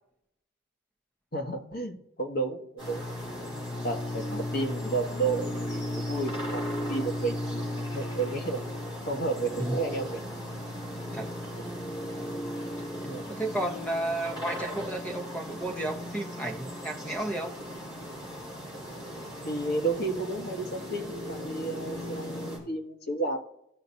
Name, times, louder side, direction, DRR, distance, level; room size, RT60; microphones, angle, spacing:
voice 1, 1.3-3.0 3.8-8.6 9.1-10.2 11.6-11.8 13.0-13.3 19.4-23.4, right 3 dB, 45° left, 3 dB, 1.3 m, -32 dB
sound 1, 2.8-22.6, left 1 dB, 25° left, 3.6 m, -36 dB
voice 2, 13.3-17.5, right 1 dB, 5° left, 3 dB, 0.9 m, -32 dB
16.5 x 5.7 x 2.7 m, 0.77 s
head